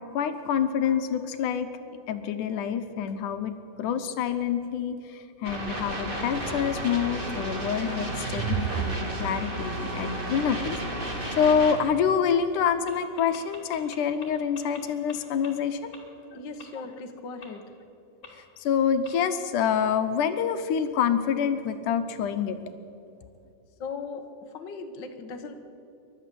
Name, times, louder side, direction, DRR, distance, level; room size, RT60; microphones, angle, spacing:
voice 1, 0.1-15.9 18.6-22.6, left 7 dB, 75° left, 8 dB, 2.4 m, -27 dB
sound 1, 5.4-11.7, right 1 dB, 20° right, 1.9 m, -33 dB
sound 2, 7.9-11.0, right 10 dB, 85° right, 2.3 m, -34 dB
sound 3, 12.9-13.0 13.2-14.2 14.5-14.8 15.1-15.2 15.4-15.5 15.9-16.0 16.6-16.7 17.4-17.5 18.2-18.3 19.0-19.1, left 5 dB, 25° left, 2.7 m, -43 dB
voice 2, 16.3-17.6 23.8-24.2 24.5-25.5, left 4 dB, 50° left, 4 dB, 1.4 m, -38 dB
28.5 x 12.0 x 7.6 m, 2.7 s
omnidirectional pair, 3.8 m